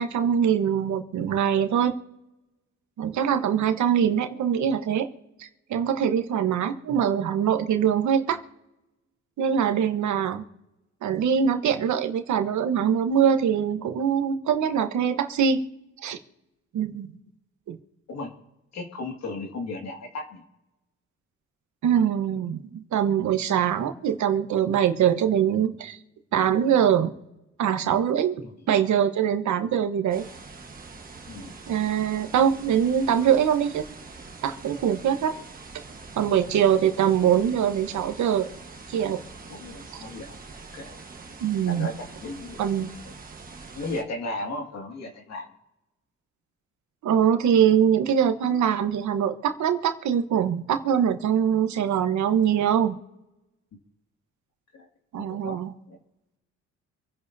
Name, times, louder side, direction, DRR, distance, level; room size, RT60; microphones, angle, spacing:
voice 1, 0.0-1.9 3.0-5.1 5.4-8.4 9.4-10.4 11.0-15.6 16.0-16.2 16.7-17.2 17.7-17.8 21.8-26.0 26.3-27.1 27.6-30.3 31.7-33.9 34.4-35.4 36.2-38.5 38.9-39.2 41.4-41.9 42.6-42.9 47.0-53.0 55.1-55.7, right 8 dB, 70° right, 8 dB, 1.2 m, -23 dB
voice 2, 18.7-20.4 28.4-28.5 31.3-31.5 35.9-36.0 39.5-41.0 41.7-42.7 43.0-43.1 43.8-45.5 54.7-54.9 55.2-55.6 55.9-56.0, left 2 dB, 60° left, 1 dB, 2.2 m, -35 dB
sound 1, 30.1-44.0, right 4 dB, 30° right, 1.4 m, -44 dB
26.5 x 10.5 x 2.8 m, 0.96 s
cardioid pair, 90°, 30 cm